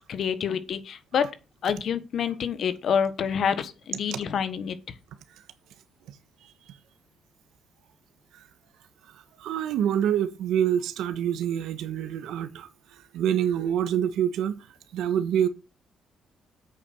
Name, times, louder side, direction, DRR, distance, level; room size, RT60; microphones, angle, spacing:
voice 1, 0.1-1.3 1.6-4.8, left 7 dB, 60° left, 1.3 m, -27 dB
voice 2, 9.4-12.7 13.1-14.7 14.9-15.5, right 9 dB, 85° right, 1.3 m, -26 dB
8.2 x 7.1 x 6.0 m
cardioid pair, 90°, 0 cm